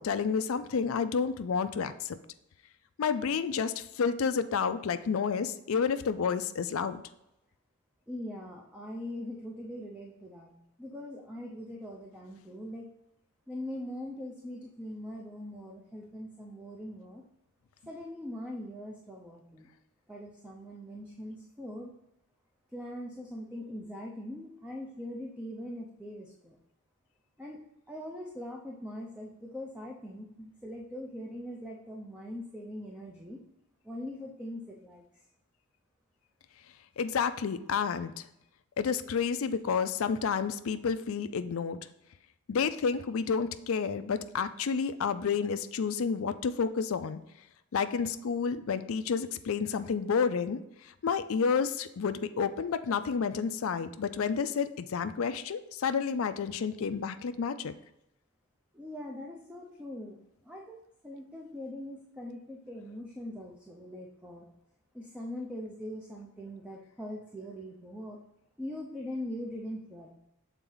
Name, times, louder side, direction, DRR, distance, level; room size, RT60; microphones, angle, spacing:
voice 1, 0.0-2.2 3.0-7.0 37.0-38.2 38.8-41.8 42.5-47.2 47.7-57.7, left 6 dB, 65° left, 11 dB, 0.4 m, -30 dB
voice 2, 8.1-10.5 10.8-12.9 13.5-17.2 17.9-19.7 20.1-21.9 22.7-26.6 27.4-27.6 27.9-33.4 33.8-35.0 58.7-60.2 60.4-64.5 64.9-68.2 68.6-70.1, left 1 dB, 5° right, -1 dB, 0.6 m, -41 dB
7.0 x 4.0 x 3.8 m, 0.86 s
head